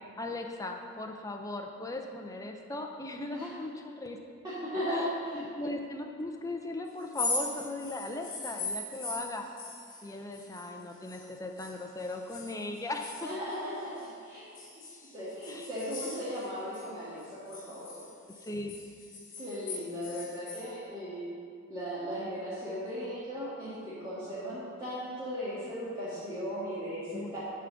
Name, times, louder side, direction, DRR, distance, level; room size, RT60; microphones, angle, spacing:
voice 1, 0.2-4.2 4.9-5.1 5.3-9.4 10.0-13.1 15.5-15.7 18.4-18.8 27.1-27.3, left 2 dB, 15° left, 3 dB, 0.5 m, -38 dB
voice 2, 4.4-5.4 13.2-14.4 15.1-18.0 19.4-21.2 21.7-27.4, equal, 20° right, -13 dB, 1.9 m, -37 dB
sound 1, 7.0-11.3 11.6-14.1 14.5-16.9 17.2-20.7, left 3 dB, 35° left, 1.2 m, -40 dB
10.5 x 3.8 x 6.9 m, 2.3 s
head